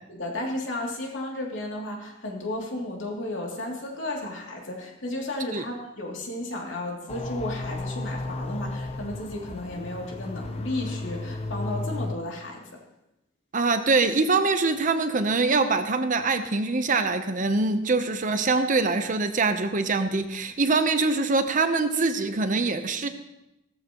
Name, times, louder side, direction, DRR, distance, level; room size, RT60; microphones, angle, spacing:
voice 1, 0.1-12.8, left 1 dB, 75° left, -1 dB, 2.9 m, -33 dB
sound 1, 7.1-12.1, left 2 dB, 35° left, 0.7 m, -33 dB
voice 2, 13.5-23.1, right 3 dB, 45° right, 8 dB, 0.8 m, -24 dB
17.0 x 14.0 x 3.1 m, 0.91 s
head